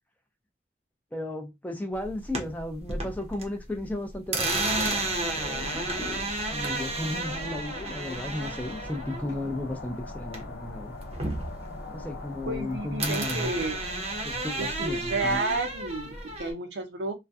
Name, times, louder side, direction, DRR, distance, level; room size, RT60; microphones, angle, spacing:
voice 1, 1.1-10.9 11.9-13.5 14.2-15.4, left 1 dB, 10° left, 0.4 m, -35 dB
sound 1, 2.0-3.5 3.8-10.7 11.0-12.6 13.0-16.5, right 2 dB, 35° right, 0.6 m, -32 dB
sound 2, 4.6-15.4, left 2 dB, 80° left, 0.8 m, -42 dB
voice 2, 12.5-13.8 14.6-17.1, right 2 dB, 80° right, 0.6 m, -31 dB
2.3 x 2.1 x 2.6 m
head